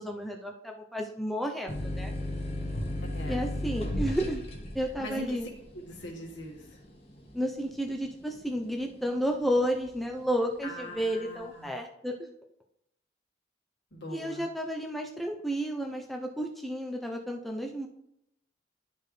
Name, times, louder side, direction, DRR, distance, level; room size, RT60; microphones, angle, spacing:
voice 1, 0.0-2.1 3.3-4.4 4.7-5.5 7.3-12.3 14.1-17.9, equal, ahead, 1 dB, 0.5 m, -32 dB
sound 1, 1.7-9.0 9.4-10.1, left 1 dB, 30° left, 1.3 m, -35 dB
voice 2, 3.1-3.5 5.0-6.8 10.6-11.7 13.9-14.5, left 1 dB, 75° left, -1 dB, 1.5 m, -42 dB
11.5 x 4.4 x 3.2 m, 0.78 s
head